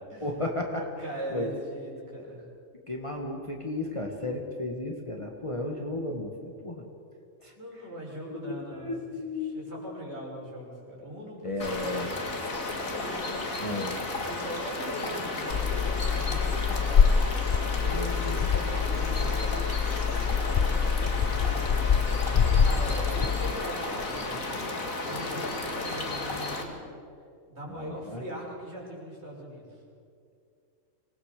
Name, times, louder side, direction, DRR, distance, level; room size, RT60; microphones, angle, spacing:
voice 1, 0.2-0.9 1.3-1.6 2.9-6.9 7.4-7.5 8.4-9.6 11.4-12.1 13.6-14.1 17.9-18.5 27.7-28.2, left 2 dB, 25° left, 1 dB, 1.9 m, -34 dB
voice 2, 1.0-2.4 7.5-8.9 9.4-12.0 12.4-13.6 14.3-17.1 17.8-19.4 20.4-20.8 21.1-26.8 27.5-29.8, right 1 dB, 50° right, -3 dB, 6.4 m, -40 dB
sound 1, 11.6-26.6, left 2 dB, 80° left, 2.7 m, -33 dB
sound 2, 15.5-23.5, left 6 dB, 50° left, 0.6 m, -25 dB
25.5 x 19.5 x 6.7 m, 2.4 s
omnidirectional pair, 1.4 m